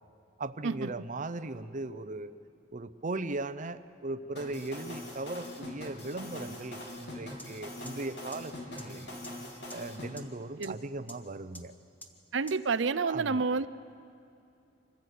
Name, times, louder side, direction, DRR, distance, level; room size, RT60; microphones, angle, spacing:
voice 1, 0.4-2.3 2.7-9.2 9.7-11.7 13.0-13.4, right 2 dB, 45° right, 12 dB, 0.7 m, -38 dB
sound 1, 4.4-10.1, left 1 dB, 65° left, 3.4 m, -42 dB
sound 2, 7.4-7.5 7.9-8.0 8.3-8.4 8.8-8.9 9.2-9.3 9.7-9.8 10.2-10.3 10.6-10.7 11.1-11.2 11.5-11.6 12.0-12.1 12.5-12.6, left 1 dB, 10° left, 1.6 m, -45 dB
voice 2, 12.3-13.7, right 4 dB, 80° right, 14 dB, 0.6 m, -29 dB
26.0 x 15.5 x 8.3 m, 2.6 s
head